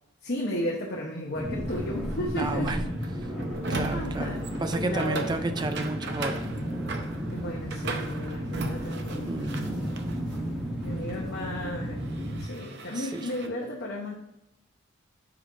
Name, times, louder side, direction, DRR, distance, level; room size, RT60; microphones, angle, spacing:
voice 1, 0.2-2.8 3.9-4.4 4.8-5.4 7.3-10.0 10.8-14.2, left 1 dB, 50° left, -2 dB, 0.9 m, -34 dB
sound 1, 1.3-12.4, equal, ahead, 1.6 m, -33 dB
sound 2, 1.7-10.4 10.7-13.5, right 3 dB, 55° right, 0.7 m, -39 dB
voice 2, 2.3-2.8 3.2-3.3 3.7-6.5 9.3-9.9 12.9-13.3, right 2 dB, 20° right, 8 dB, 0.3 m, -32 dB
5.1 x 4.9 x 3.8 m, 0.89 s
head